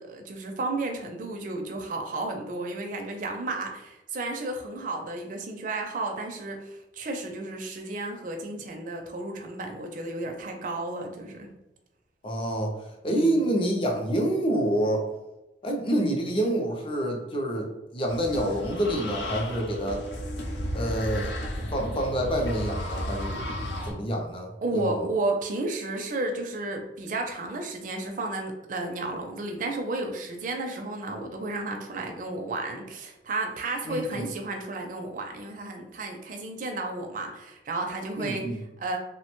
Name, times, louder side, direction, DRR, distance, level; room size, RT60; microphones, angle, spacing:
voice 1, 0.0-11.5 13.1-13.5 24.6-39.0, right 2 dB, 45° right, 3 dB, 0.4 m, -32 dB
voice 2, 12.2-15.1 15.6-20.1 20.7-21.3 21.7-23.4 23.8-25.1 33.9-34.2 38.2-38.6, right 1 dB, 30° left, 1 dB, 0.4 m, -27 dB
sound 1, 18.1-23.9, equal, 75° left, 0.6 m, -33 dB
2.9 x 2.1 x 2.9 m, 0.97 s
head